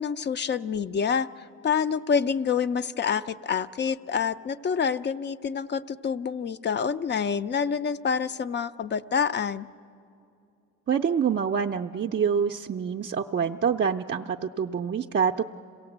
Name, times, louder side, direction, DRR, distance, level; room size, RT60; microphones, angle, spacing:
voice 1, 0.0-9.7, left 6 dB, 35° left, 14 dB, 0.5 m, -27 dB
voice 2, 10.9-15.4, right 7 dB, 35° right, 3 dB, 0.5 m, -26 dB
26.5 x 17.5 x 7.9 m, 2.5 s
cardioid pair, 90°, 30 cm